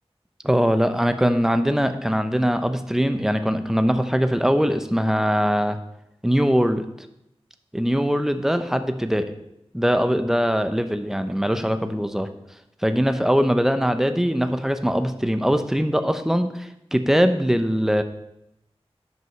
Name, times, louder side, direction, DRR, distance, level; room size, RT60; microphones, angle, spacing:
voice 1, 0.4-5.8 6.2-6.9 7.7-9.3 9.7-12.3 12.8-18.0, equal, 5° right, 9 dB, 0.8 m, -21 dB
9.5 x 5.3 x 6.6 m, 0.83 s
wide cardioid pair, 60°, 11 cm